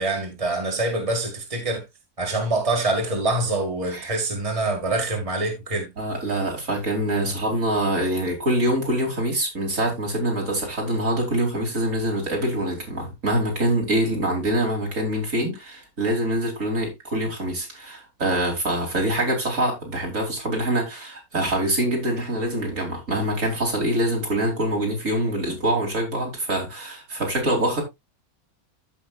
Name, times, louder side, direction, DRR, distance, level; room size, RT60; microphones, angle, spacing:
voice 1, 0.0-1.8 2.2-5.9 7.3-7.4, right 2 dB, 25° right, 2.0 m, -25 dB
voice 2, 6.0-27.8, right 1 dB, 60° right, 3.4 m, -25 dB
14.5 x 5.7 x 2.4 m
omnidirectional pair, 1.5 m